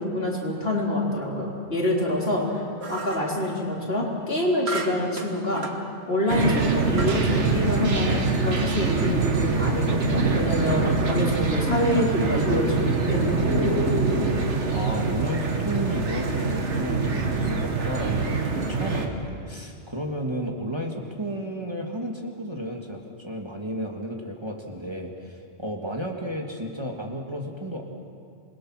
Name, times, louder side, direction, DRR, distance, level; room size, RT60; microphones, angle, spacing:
voice 1, 0.0-2.6 2.9-5.7 6.1-13.5, left 1 dB, 60° left, -3 dB, 4.0 m, -26 dB
sound 1, 2.8-3.3 4.7-5.8 6.4-6.5 7.0-7.3, right 3 dB, 65° right, 1.8 m, -33 dB
sound 2, 6.3-19.1, right 4 dB, 85° right, 1.9 m, -24 dB
voice 2, 14.7-27.8, equal, 25° right, 0 dB, 1.8 m, -32 dB
27.0 x 22.0 x 6.1 m, 2.4 s
omnidirectional pair, 1.2 m